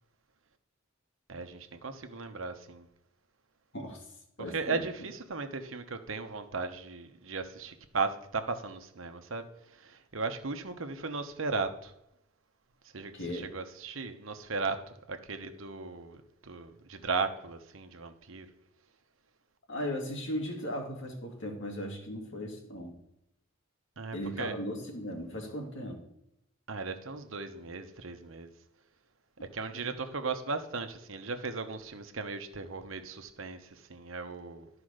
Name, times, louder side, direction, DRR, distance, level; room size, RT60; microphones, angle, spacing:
voice 1, 1.3-2.9 4.5-11.9 12.9-14.8 15.1-18.5 24.0-24.5 26.7-28.5 29.5-34.7, right 4 dB, 70° right, 1.1 m, -36 dB
voice 2, 3.7-4.1 4.4-4.8 13.1-13.5 19.7-23.0 24.1-26.0 29.7-29.8, equal, 65° left, 2.3 m, -37 dB
11.5 x 4.9 x 6.5 m
head